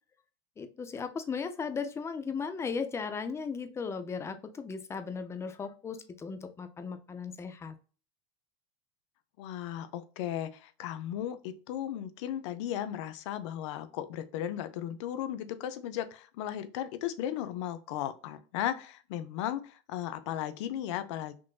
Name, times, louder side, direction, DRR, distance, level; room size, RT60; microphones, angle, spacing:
voice 1, 0.6-7.7, left 5 dB, 15° left, 9 dB, 0.4 m, -36 dB
voice 2, 9.4-21.4, left 11 dB, 75° left, 11 dB, 0.5 m, -36 dB
3.7 x 2.5 x 2.3 m, 0.37 s
supercardioid pair, 120°, 15 cm